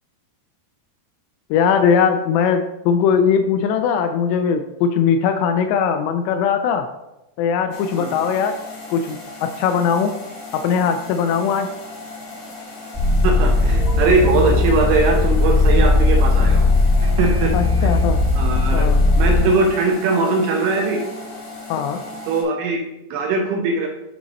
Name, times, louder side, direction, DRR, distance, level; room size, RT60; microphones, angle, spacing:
voice 1, 1.5-6.9 7.4-8.6 8.9-10.2 10.5-11.7 17.5-18.2 18.7-19.1 21.7-22.0, left 7 dB, 85° left, 7 dB, 2.5 m, -20 dB
sound 1, 7.7-22.4, left 3 dB, 55° left, 1.3 m, -36 dB
sound 2, 12.9-19.3, left 2 dB, 5° right, 0.4 m, -17 dB
voice 2, 13.2-16.7 17.0-17.5 17.8-17.9 18.4-18.9 19.2-21.1 22.3-23.9, right 3 dB, 75° right, 2 dB, 2.5 m, -20 dB
9.3 x 4.9 x 4.1 m, 0.95 s
omnidirectional pair, 5.3 m